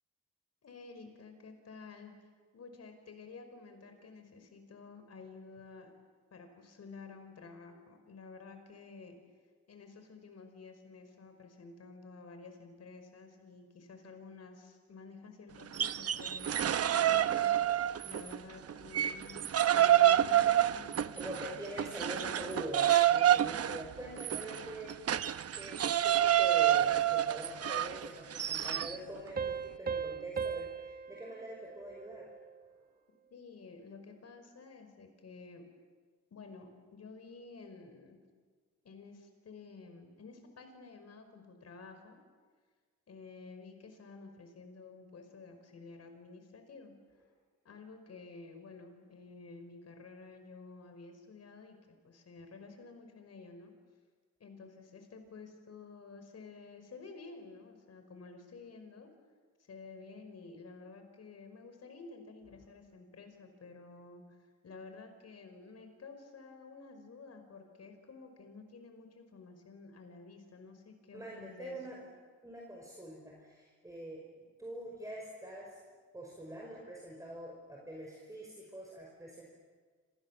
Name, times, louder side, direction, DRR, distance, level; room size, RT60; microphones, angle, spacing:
voice 1, 0.6-2.1 2.5-5.9 6.3-9.2 9.7-21.3 21.8-22.2 33.3-35.7 36.3-38.2 38.8-42.2 43.1-46.9 47.6-53.7 54.4-59.1 59.6-64.2 64.6-72.0, left 4 dB, 55° left, 6 dB, 5.1 m, -51 dB
sound 1, 15.6-18.4 18.7-29.0, right 11 dB, 55° right, 0.8 m, -28 dB
voice 2, 21.1-24.9 25.5-32.3 32.8-32.9 71.1-72.0 72.4-74.3 74.6-75.8 76.1-79.4, right 1 dB, 10° right, -2 dB, 5.4 m, -44 dB
Piano, 29.4-32.7, right 6 dB, 30° right, 1.2 m, -39 dB
28.5 x 27.5 x 7.3 m, 1.5 s
wide cardioid pair, 125°, 30 cm